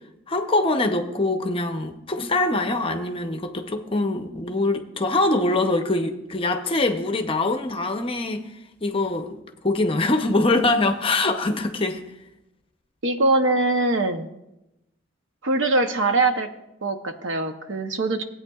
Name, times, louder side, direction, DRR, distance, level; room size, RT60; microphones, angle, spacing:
voice 1, 0.3-8.5 8.8-9.4 9.6-12.0, left 2 dB, 25° left, 6 dB, 0.6 m, -23 dB
voice 2, 13.0-14.3 15.4-16.5 16.8-18.2, right 2 dB, 65° right, 7 dB, 0.8 m, -22 dB
18.0 x 8.5 x 2.3 m, 0.91 s
head